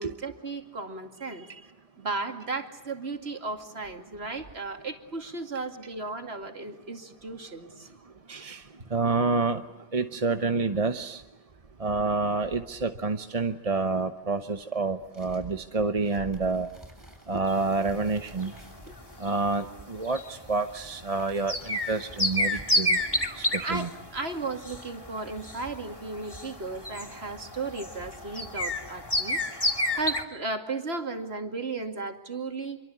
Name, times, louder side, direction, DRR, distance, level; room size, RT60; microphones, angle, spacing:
voice 1, 0.0-1.7 2.0-8.0 18.9-19.0 23.6-29.4 29.7-32.8, right 3 dB, 75° right, 6 dB, 2.7 m, -35 dB
voice 2, 8.3-8.6 8.9-9.6 9.9-11.2 11.8-16.7 17.3-18.5 19.2-23.0 23.4-23.9, right 3 dB, 35° right, 8 dB, 1.0 m, -28 dB
sound 1, 15.1-23.8, equal, 20° right, 7.5 m, -51 dB
sound 2, 17.5-30.2, left 1 dB, 20° left, 2.7 m, -31 dB
27.0 x 24.0 x 8.6 m, 1.1 s
omnidirectional pair, 1.1 m